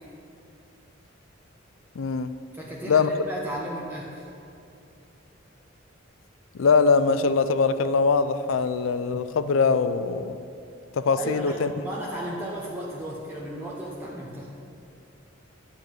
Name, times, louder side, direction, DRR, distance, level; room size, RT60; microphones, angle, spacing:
voice 1, 2.0-2.3 2.9-3.1 6.5-10.4 10.9-11.7, left 5 dB, 90° left, 12 dB, 0.5 m, -22 dB
voice 2, 2.5-4.3 11.2-11.6 11.8-14.5, right 1 dB, 10° right, -4 dB, 0.8 m, -34 dB
10.0 x 4.6 x 7.9 m, 2.7 s
head